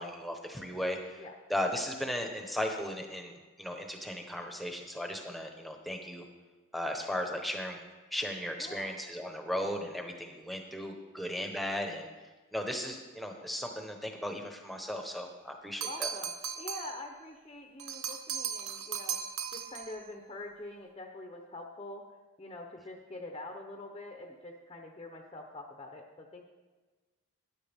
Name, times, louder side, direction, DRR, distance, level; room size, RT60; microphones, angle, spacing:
voice 1, 0.0-1.2 1.5-6.2 6.7-7.8 8.1-12.1 12.5-16.1, equal, ahead, 3 dB, 1.0 m, -36 dB
voice 2, 8.6-9.0 15.9-19.2 19.5-22.0 22.4-26.5, left 2 dB, 25° left, 2 dB, 0.8 m, -45 dB
sound 1, 15.8-17.0 17.8-20.0, right 8 dB, 85° right, 0.8 m, -37 dB
13.5 x 10.5 x 3.6 m, 1.3 s
head